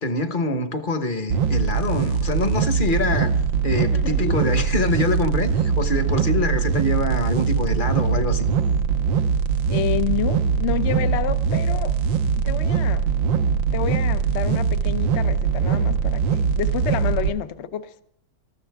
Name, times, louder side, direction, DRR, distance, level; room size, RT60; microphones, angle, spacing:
voice 1, 0.0-3.3 3.6-8.5, left 2 dB, 30° left, 1.1 m, -25 dB
sound 1, 1.3-17.3, right 6 dB, 75° right, 1.6 m, -22 dB
voice 2, 9.7-12.0 12.4-13.1 13.7-18.0, left 10 dB, 55° left, 0.8 m, -29 dB
20.0 x 14.0 x 3.5 m
omnidirectional pair, 2.1 m